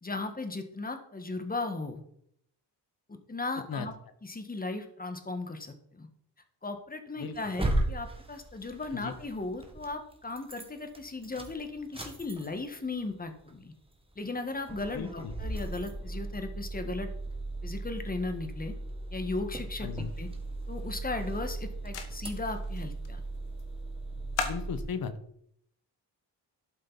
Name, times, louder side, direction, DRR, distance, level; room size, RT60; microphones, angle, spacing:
voice 1, 0.0-2.0 3.1-3.9 4.2-6.1 6.6-13.7 14.2-17.1 17.6-18.8 19.1-20.3 20.7-23.2, left 3 dB, 20° left, 7 dB, 1.4 m, -36 dB
sound 1, 7.3-9.9 10.3-10.7 10.9-12.8 13.1-13.2 13.5-13.6 14.2-14.4 14.7-24.8, right 2 dB, 15° right, 1.6 m, -36 dB
voice 2, 14.9-15.3 19.8-20.1 24.4-25.1, left 6 dB, 55° left, 11 dB, 1.2 m, -36 dB
sound 2, 19.9-25.0, left 6 dB, 85° left, 1.3 m, -42 dB
12.0 x 5.2 x 4.1 m, 0.70 s
cardioid pair, 85°, 43 cm